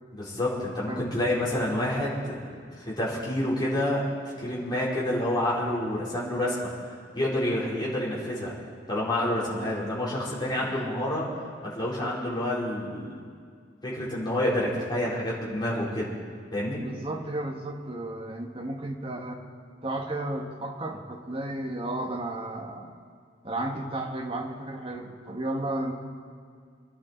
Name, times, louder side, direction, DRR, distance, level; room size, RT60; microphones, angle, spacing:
voice 1, 0.1-4.1 4.4-6.7 7.1-8.5 8.9-11.3 11.6-13.1 13.8-16.1 16.5-16.8, left 1 dB, 25° left, -7 dB, 5.1 m, -28 dB
voice 2, 16.7-19.4 19.8-22.9 23.4-25.9, right 1 dB, 30° right, 1 dB, 1.8 m, -33 dB
27.5 x 11.0 x 4.6 m, 2.1 s
head